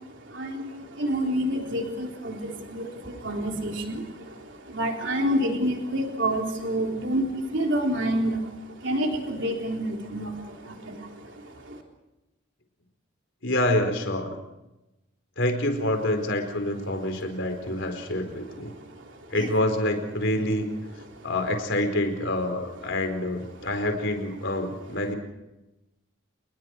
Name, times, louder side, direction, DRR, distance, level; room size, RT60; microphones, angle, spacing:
voice 1, 0.2-11.8 18.7-19.1 19.4-19.5 21.1-21.2, equal, 60° right, 1 dB, 3.8 m, -29 dB
voice 2, 13.4-14.3 15.4-18.7 19.3-20.6 21.2-25.2, left 1 dB, 60° left, 5 dB, 4.6 m, -27 dB
28.5 x 21.5 x 4.8 m, 0.97 s
head